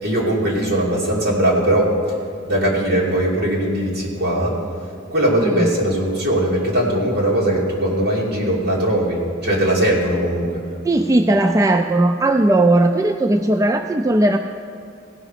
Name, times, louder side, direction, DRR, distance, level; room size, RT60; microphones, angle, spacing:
voice 1, 0.0-1.9 2.4-4.5 5.1-10.6, right 1 dB, 55° right, -4 dB, 2.8 m, -20 dB
voice 2, 5.4-5.7 10.8-14.4, right 2 dB, 15° right, 5 dB, 0.3 m, -17 dB
17.0 x 6.0 x 5.7 m, 2.5 s
head